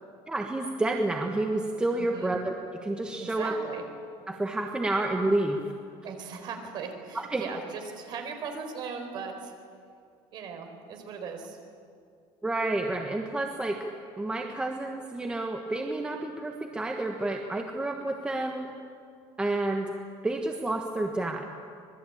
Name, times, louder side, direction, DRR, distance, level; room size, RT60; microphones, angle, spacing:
voice 1, 0.3-2.5 2.8-3.5 4.3-5.6 7.1-7.4 12.4-13.8 14.2-18.7 19.4-19.9 20.2-21.5, right 2 dB, 10° right, 3 dB, 1.3 m, -29 dB
voice 2, 2.0-2.3 3.2-3.8 6.0-9.5 10.3-11.6, right 5 dB, 40° right, 5 dB, 4.3 m, -38 dB
26.0 x 20.5 x 8.8 m, 2.3 s
cardioid pair, 165°, 11 cm